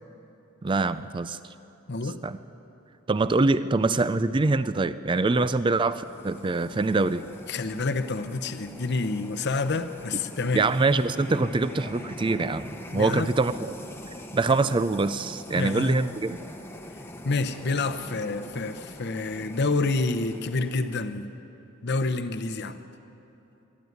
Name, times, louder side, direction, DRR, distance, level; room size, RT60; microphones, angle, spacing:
voice 1, 0.6-1.4 2.2-2.4 3.1-7.3 10.5-13.8 14.3-16.4, right 3 dB, 25° right, 14 dB, 0.4 m, -24 dB
voice 2, 1.9-2.2 7.5-10.7 12.9-13.3 15.6-15.9 17.2-21.3 21.8-22.8, left 3 dB, 55° left, 9 dB, 0.8 m, -28 dB
sound 1, 5.8-21.2, left 1 dB, 10° left, 1.0 m, -43 dB
21.5 x 14.0 x 9.5 m, 2.9 s
head